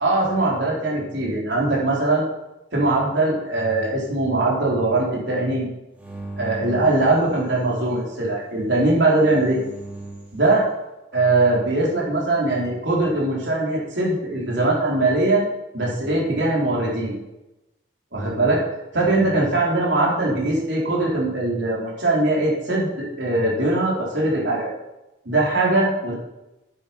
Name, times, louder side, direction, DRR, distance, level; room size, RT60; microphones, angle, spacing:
voice 1, 0.0-2.3 2.7-5.7 6.4-9.6 10.3-10.7 11.1-15.4 15.7-17.1 18.1-18.6 18.9-24.7 25.3-26.1, right 2 dB, 70° right, -4 dB, 3.7 m, -21 dB
sound 1, 6.0-7.9 8.9-10.4, right 2 dB, 10° right, 2.2 m, -39 dB
9.0 x 8.9 x 5.8 m, 0.96 s
head